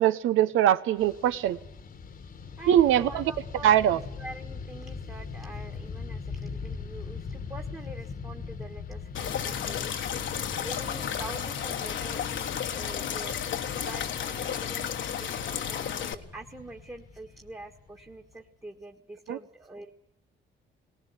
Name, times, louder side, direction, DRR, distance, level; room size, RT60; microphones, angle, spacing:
voice 1, 0.0-1.6 2.7-3.3 3.6-4.0 19.3-19.4, right 11 dB, 85° right, 13 dB, 1.0 m, -22 dB
Fixed-wing aircraft airplane, 1.0-18.4, left 5 dB, 45° left, 1.5 m, -41 dB
voice 2, 2.6-9.9 10.6-13.4 13.8-19.9, right 2 dB, 15° right, 1 dB, 1.6 m, -45 dB
sound 1, 9.1-16.1, left 9 dB, 70° left, 1.5 m, -32 dB
19.0 x 19.0 x 9.7 m, 0.82 s
cardioid pair, 90°, 20 cm